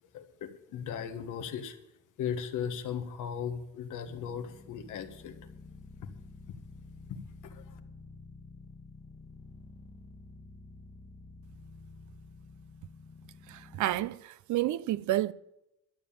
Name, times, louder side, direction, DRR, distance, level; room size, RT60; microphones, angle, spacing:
voice 1, 0.1-1.8 2.2-5.3 7.1-7.8, left 8 dB, 85° left, 1.5 m, -37 dB
sound 1, 4.0-14.1, left 3 dB, 20° left, 1.2 m, -50 dB
voice 2, 13.5-15.3, right 15 dB, 75° right, 0.5 m, -30 dB
12.0 x 7.1 x 8.7 m
cardioid pair, 90°, 30 cm